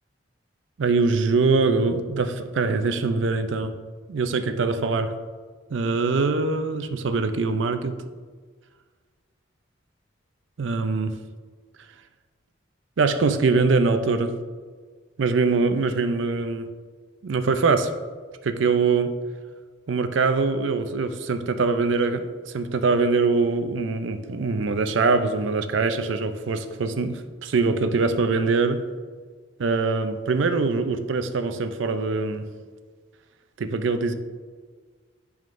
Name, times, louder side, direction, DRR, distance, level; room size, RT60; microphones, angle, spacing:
voice 1, 0.8-3.8 4.1-5.2 5.7-8.0 10.6-11.2 13.0-14.4 15.2-16.7 17.2-17.9 18.4-19.2 19.9-28.9 29.6-32.5 33.6-34.1, right 4 dB, 75° right, 9 dB, 0.5 m, -23 dB
10.5 x 3.7 x 2.5 m, 1.5 s
head